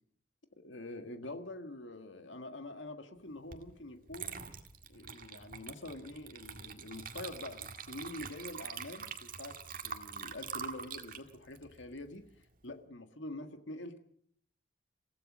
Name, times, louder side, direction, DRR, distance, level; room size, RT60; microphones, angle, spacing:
voice 1, 0.6-4.4 4.9-9.6 9.8-12.3 12.6-14.0, left 2 dB, 75° left, 7 dB, 1.7 m, -45 dB
Water / Liquid, 3.5-3.7 4.1-12.6, right 6 dB, 45° right, 2.0 m, -45 dB
28.0 x 16.5 x 6.2 m, 0.65 s
head